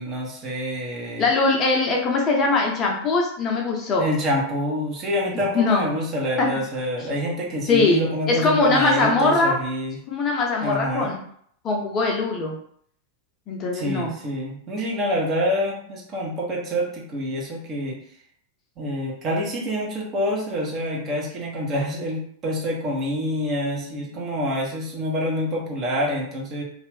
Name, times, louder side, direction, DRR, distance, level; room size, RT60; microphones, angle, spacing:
voice 1, 0.0-1.2 4.0-10.0 10.6-11.1 13.7-18.0 18.8-26.6, equal, 30° right, -2 dB, 1.1 m, -26 dB
voice 2, 1.2-4.1 5.5-5.9 6.4-6.5 7.0-7.1 7.7-9.6 10.1-11.2 11.6-12.6 13.5-14.1, left 3 dB, 30° left, 0 dB, 0.6 m, -21 dB
2.6 x 2.5 x 3.4 m, 0.64 s
figure-of-eight pair, 90°, 0 cm